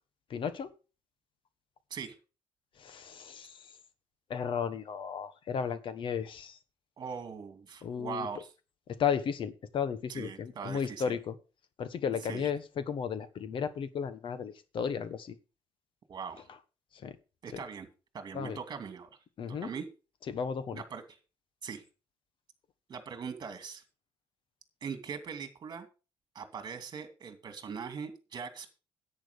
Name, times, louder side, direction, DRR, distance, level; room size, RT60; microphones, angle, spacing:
voice 1, 0.3-0.7 2.8-3.6 4.3-6.6 7.8-8.3 9.0-11.3 11.8-15.3 17.0-17.1 17.5-17.6 18.3-18.6 19.4-19.7 20.3-20.8, left 7 dB, 50° left, 13 dB, 1.3 m, -34 dB
voice 2, 7.0-8.5 10.1-11.1 12.3-12.5 16.1-16.5 17.4-17.9 18.1-19.1 19.5-19.9 20.7-21.0 21.6-21.8 22.9-23.8 24.8-25.9 26.3-28.7, right 6 dB, 40° right, 8 dB, 2.5 m, -41 dB
10.5 x 8.9 x 5.1 m, 0.33 s
cardioid pair, 130°, 11 cm